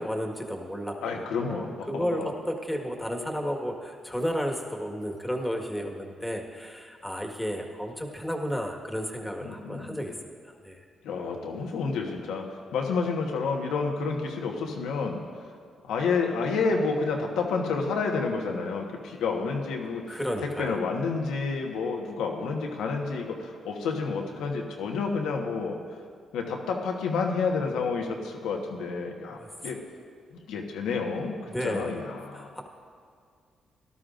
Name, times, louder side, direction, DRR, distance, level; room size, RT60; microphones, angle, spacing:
voice 1, 0.0-10.1 10.4-10.8 20.1-20.8 29.4-29.5 31.5-31.9 32.3-32.6, equal, 5° left, 1 dB, 1.7 m, -32 dB
voice 2, 1.0-2.4 9.4-9.9 11.0-15.2 15.8-25.8 26.3-29.8 30.5-31.4 31.6-32.5, left 4 dB, 90° left, 1 dB, 1.3 m, -30 dB
17.5 x 12.5 x 2.6 m, 2.2 s
cardioid pair, 70°, 0 cm